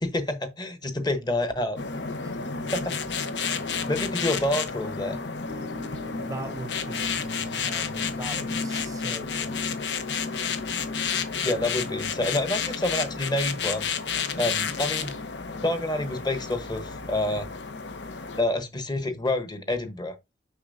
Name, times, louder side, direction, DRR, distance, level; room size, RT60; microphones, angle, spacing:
voice 1, 0.0-1.8 2.7-2.9 3.9-5.2 11.4-13.9 14.4-15.2 15.6-17.5 18.4-20.1, left 1 dB, 25° left, 1.0 m, -28 dB
sound 1, 1.8-18.4, left 5 dB, 80° left, 1.0 m, -31 dB
sound 2, 5.5-11.9, left 3 dB, 60° left, 3.5 m, -47 dB
voice 2, 6.1-9.7, right 2 dB, 20° right, 0.6 m, -40 dB
6.8 x 6.0 x 2.6 m
head